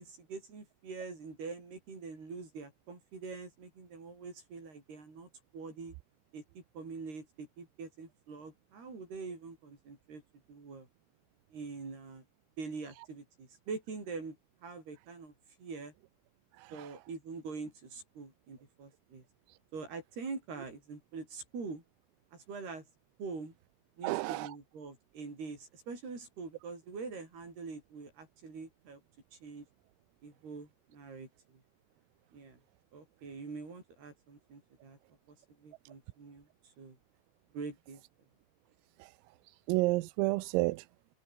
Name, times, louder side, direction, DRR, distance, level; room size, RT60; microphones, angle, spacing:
voice 1, 0.0-5.3 5.5-5.9 6.3-10.2 10.5-10.9 11.5-12.2 12.6-14.4 14.6-15.3 15.6-15.9 16.7-19.2 19.7-21.8 22.3-22.8 23.2-23.5 24.0-29.0 29.3-29.7 30.2-31.6 32.3-32.6 32.9-35.0 35.3-36.5 36.8-37.0 37.5-38.0, right 4 dB, 50° right, 9.8 m, -44 dB
voice 2, 16.6-16.9 24.0-24.6 39.0-39.1 39.7-40.9, right 21 dB, 90° right, 3.4 m, -31 dB
omnidirectional pair, 5.9 m